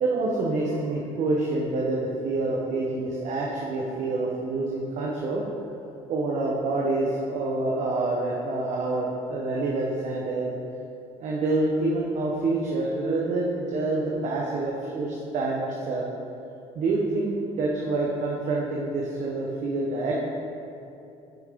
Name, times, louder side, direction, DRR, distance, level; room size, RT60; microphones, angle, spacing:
voice 1, 0.0-5.4 6.1-10.5 11.2-16.0 16.7-20.2, right 2 dB, 60° right, -3 dB, 1.1 m, -27 dB
8.6 x 6.4 x 3.7 m, 2.7 s
supercardioid pair, 75°, 14 cm